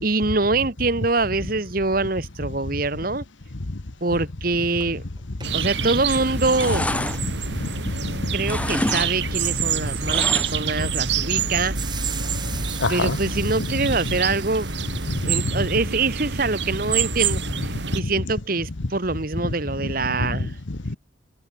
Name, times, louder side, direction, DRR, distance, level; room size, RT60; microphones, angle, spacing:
voice 1, 0.0-3.2 4.0-5.0 5.5-6.9 8.3-11.8 12.9-14.7 15.2-20.6, right 3 dB, 50° right, 1.6 m, -24 dB
sound 1, 4.1-4.2 4.5-4.6 4.8-5.6 6.1-6.7 7.6-7.7 11.7-15.3, right 7 dB, 25° right, 4.9 m, -39 dB
sound 2, 5.4-18.0, right 6 dB, 70° right, 4.0 m, -27 dB
sound 3, 5.7-6.0 6.3-8.1 8.4-9.1 9.4-10.8 11.1-11.2, left 1 dB, 5° left, 1.4 m, -28 dB
voice 2, 7.5-7.9 8.2-8.4 12.8-13.2 13.6-13.7 15.2-15.6 18.0-18.1 19.4-19.5 20.0-21.0, left 2 dB, 90° left, 1.3 m, -27 dB
head